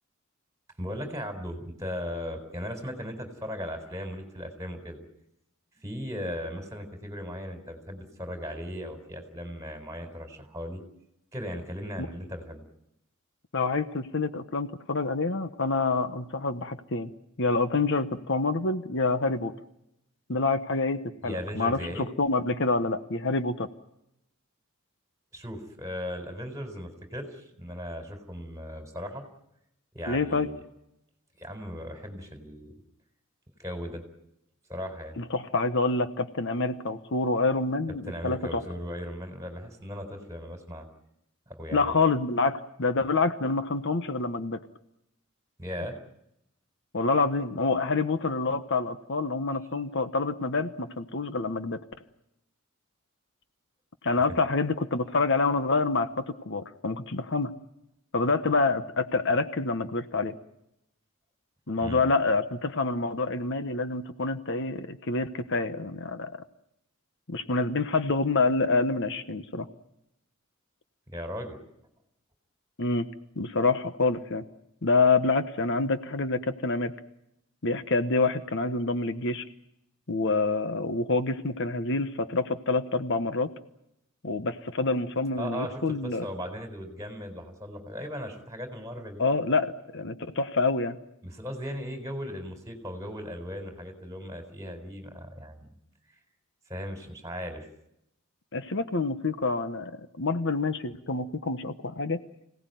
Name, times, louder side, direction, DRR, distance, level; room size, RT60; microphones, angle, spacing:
voice 1, 0.8-5.0 5.8-10.8 11.3-12.6 21.2-22.1 25.3-29.2 29.9-30.6 31.4-32.7 33.6-34.0 34.7-35.2 38.1-40.9 41.5-42.0 45.6-46.0 61.8-62.1 71.1-71.6 85.4-89.2 91.2-95.7 96.7-97.7, equal, 15° right, 5 dB, 4.2 m, -37 dB
voice 2, 13.5-17.1 17.4-19.5 20.3-23.7 30.0-30.5 35.2-38.6 41.7-44.6 46.9-51.8 54.0-57.5 58.1-60.3 61.7-66.3 67.3-69.7 72.8-73.1 73.4-74.4 74.8-76.9 77.6-79.4 80.1-83.5 84.2-86.2 89.2-91.0 98.5-102.2, left 3 dB, 60° left, 10 dB, 1.1 m, -27 dB
26.0 x 17.5 x 9.2 m, 0.82 s
head